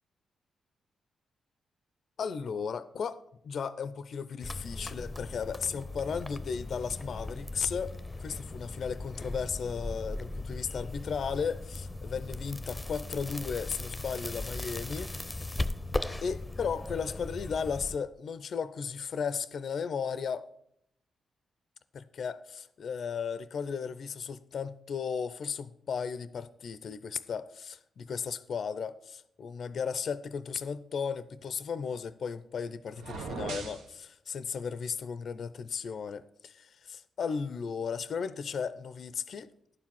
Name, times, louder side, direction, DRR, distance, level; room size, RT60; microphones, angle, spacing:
voice 1, 2.2-7.9 8.2-15.1 16.2-20.5 21.9-39.5, left 6 dB, 60° left, 15 dB, 0.4 m, -35 dB
sound 1, 4.4-18.0, left 2 dB, 15° left, 0.7 m, -38 dB
sound 2, 32.9-33.9, right 4 dB, 80° right, 0.9 m, -38 dB
11.0 x 4.8 x 7.1 m, 0.72 s
hypercardioid pair, 40°, 0 cm